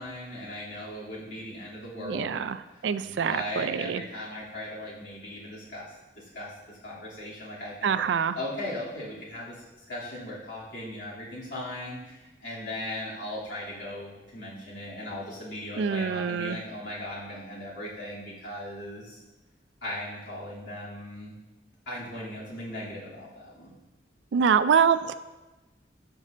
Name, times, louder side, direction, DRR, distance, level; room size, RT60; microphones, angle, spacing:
voice 1, 0.0-2.4 2.7-8.0 8.3-9.6 9.9-19.2 19.8-21.4 21.9-23.7, left 1 dB, 85° left, -7 dB, 2.8 m, -38 dB
voice 2, 2.0-4.0 7.8-8.4 15.8-16.6 24.3-25.1, right 6 dB, 75° right, 13 dB, 0.4 m, -25 dB
12.5 x 5.3 x 2.6 m, 1.1 s
head